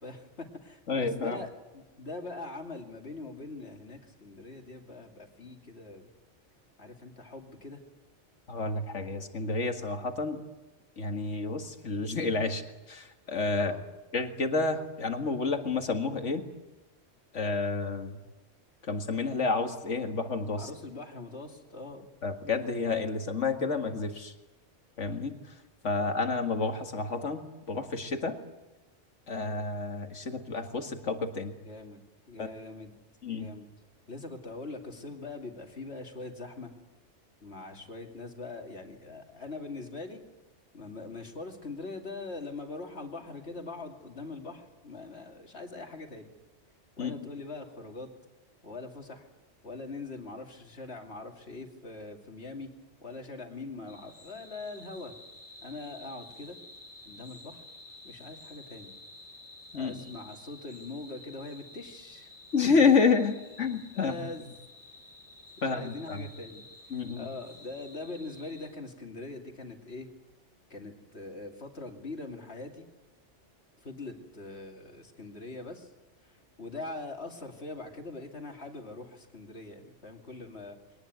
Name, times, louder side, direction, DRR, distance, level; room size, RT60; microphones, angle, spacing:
voice 1, 0.0-6.1 6.8-7.8 9.1-9.2 13.6-13.9 20.6-22.1 26.0-26.1 31.6-32.0 32.3-32.9 33.3-33.7 34.1-36.7 37.4-40.2 40.7-46.3 47.0-48.1 48.6-49.3 49.6-52.7 53.0-55.1 55.6-56.6 57.0-57.6 58.0-58.9 59.7-62.3 63.9-64.5 65.6-66.6 67.2-70.1 70.7-72.9 73.8-75.9 76.2-76.3 76.6-80.8, left 3 dB, 60° left, 3 dB, 2.9 m, -42 dB
voice 2, 0.9-1.4 8.5-10.4 11.0-12.6 12.9-13.8 14.1-16.4 17.3-18.2 18.9-20.7 22.2-24.3 25.0-25.4 25.8-28.4 29.3-31.5 32.4-32.5 33.2-33.5 47.0-47.3 59.7-60.0 62.5-64.3 65.6-66.2 66.9-67.3, left 4 dB, 90° left, 6 dB, 2.3 m, -29 dB
sound 1, 53.9-68.7, left 1 dB, 10° right, 4.8 m, -51 dB
22.5 x 19.0 x 9.4 m, 1.0 s
omnidirectional pair, 1.2 m